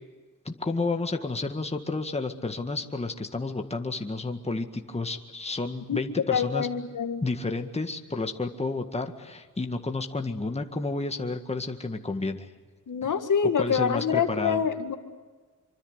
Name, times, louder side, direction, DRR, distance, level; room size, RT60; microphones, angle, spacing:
voice 1, 0.5-6.7 7.2-12.5 13.6-14.6, left 3 dB, 20° left, 5 dB, 1.9 m, -31 dB
voice 2, 5.9-7.2 12.9-15.0, left 7 dB, 70° left, 7 dB, 2.2 m, -26 dB
25.5 x 24.5 x 8.1 m, 1.4 s
wide cardioid pair, 100°, 32 cm